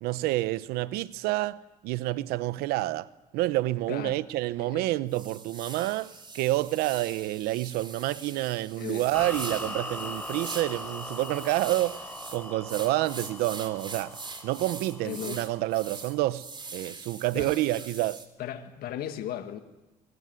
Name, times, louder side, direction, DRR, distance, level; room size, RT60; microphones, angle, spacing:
voice 1, 0.0-14.2 14.4-16.5 16.7-18.2, right 17 dB, 85° right, 0.8 m, -28 dB
voice 2, 3.9-4.2 4.6-4.9 8.8-9.1 15.0-15.5 17.3-17.5 18.4-19.6, left 11 dB, 75° left, 1.7 m, -36 dB
sound 1, 3.9-4.0 4.5-4.6 5.1-18.3, right 4 dB, 30° right, 3.5 m, -43 dB
sound 2, 9.1-16.3, left 1 dB, 10° left, 6.2 m, -40 dB
23.5 x 19.0 x 9.5 m
supercardioid pair, 75°, 16 cm